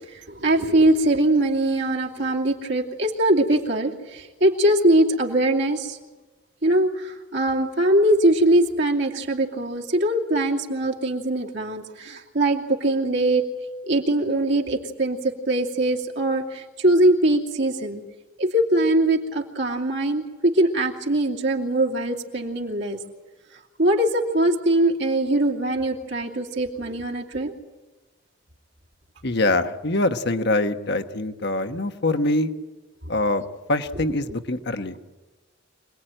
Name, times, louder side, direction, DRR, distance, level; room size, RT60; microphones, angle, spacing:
voice 1, 0.1-6.0 6.6-13.5 13.9-18.0 18.4-23.0 23.8-27.5, right 1 dB, 60° right, -1 dB, 2.7 m, -22 dB
voice 2, 29.2-32.5 33.1-33.4 33.7-35.0, left 2 dB, 55° left, 8 dB, 1.3 m, -24 dB
26.0 x 19.5 x 9.1 m, 1.2 s
head